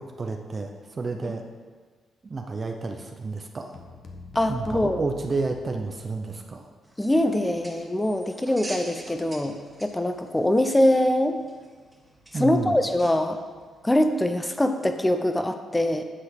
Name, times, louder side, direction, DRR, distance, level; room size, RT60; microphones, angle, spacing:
voice 1, 0.0-1.4 2.2-3.8 4.5-6.7 12.3-12.8, right 3 dB, 35° right, 4 dB, 0.8 m, -31 dB
sound 1, 3.7-6.3, left 4 dB, 60° left, 1.1 m, -43 dB
voice 2, 4.3-5.0 7.0-11.4 12.3-13.4 13.8-16.0, left 1 dB, 15° left, 7 dB, 0.9 m, -23 dB
sound 2, 6.8-14.2, right 1 dB, 15° right, 1.7 m, -46 dB
9.9 x 3.9 x 6.6 m, 1.5 s
cardioid pair, 70°, 0 cm